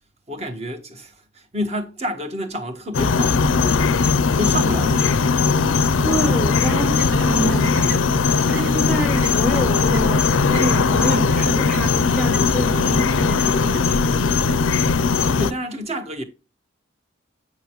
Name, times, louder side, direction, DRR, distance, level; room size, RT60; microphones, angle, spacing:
voice 1, 0.3-4.0 4.3-5.3 15.2-16.2, equal, 30° right, 1.3 m, -29 dB
sound 1, 2.9-15.5, left 4 dB, 75° left, 0.5 m, -19 dB
voice 2, 6.0-14.4, right 1 dB, 5° left, 0.7 m, -28 dB
sound 2, 6.6-14.6, right 2 dB, 60° right, 1.0 m, -37 dB
9.2 x 5.4 x 3.0 m
head